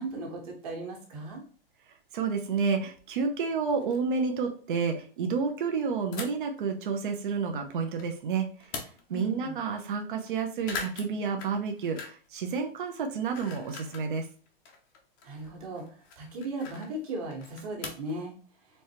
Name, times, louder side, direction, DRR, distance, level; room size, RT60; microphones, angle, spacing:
voice 1, 0.0-1.4 9.1-9.6 15.2-15.8 16.2-18.3, right 2 dB, 40° right, 0 dB, 1.5 m, -37 dB
voice 2, 2.1-8.5 9.1-14.3, right 5 dB, 55° right, 4 dB, 0.8 m, -30 dB
sound 1, 2.4-2.5 3.0-3.1 3.3-3.4 3.7-4.2 6.1-6.6 7.1-8.1 8.4-9.3 9.7-9.8 10.0-10.3 10.6-12.4 12.6-14.1 14.5-18.2, left 5 dB, 20° left, 0.6 m, -42 dB
4.4 x 3.3 x 2.9 m, 0.42 s
hypercardioid pair, 175°, 30 cm